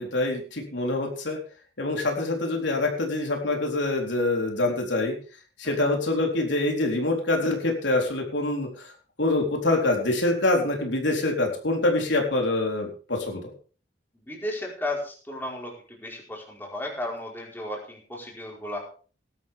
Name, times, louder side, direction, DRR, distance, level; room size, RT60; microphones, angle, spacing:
voice 1, 0.0-1.4 1.8-5.2 5.6-8.9 9.2-13.4, left 2 dB, 75° left, 1 dB, 3.9 m, -25 dB
voice 2, 14.3-18.8, left 1 dB, 10° left, -2 dB, 4.8 m, -34 dB
18.5 x 12.0 x 3.6 m, 0.39 s
head